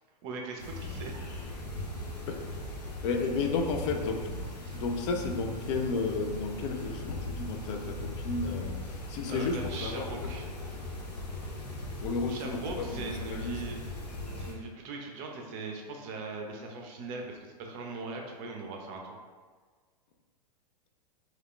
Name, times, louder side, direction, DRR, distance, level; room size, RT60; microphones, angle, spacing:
voice 1, 0.2-1.3 4.6-4.8 9.3-10.5 12.3-13.8 14.3-19.1, right 3 dB, 45° right, 1 dB, 0.5 m, -40 dB
sound 1, 0.6-14.5, left 1 dB, 85° left, 0.7 m, -39 dB
voice 2, 3.0-4.3 4.7-10.3 12.0-13.6, left 4 dB, 45° left, 3 dB, 0.4 m, -32 dB
2.3 x 2.2 x 3.6 m, 1.5 s
hypercardioid pair, 105°, 21 cm